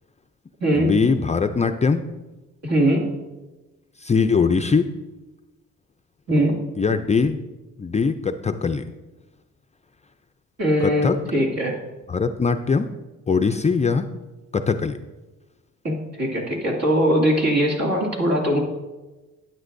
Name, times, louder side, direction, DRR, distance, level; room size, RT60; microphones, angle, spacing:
voice 1, 0.8-2.0 4.0-4.9 6.8-7.4 7.8-8.8 10.8-11.2 12.1-12.9 13.3-14.0 14.5-15.0, left 5 dB, 25° left, 8 dB, 0.4 m, -21 dB
voice 2, 2.6-3.0 6.3-6.5 10.6-11.8 15.8-18.6, equal, 60° right, -1 dB, 2.4 m, -21 dB
12.5 x 9.2 x 2.6 m, 1.1 s
cardioid pair, 90°, 30 cm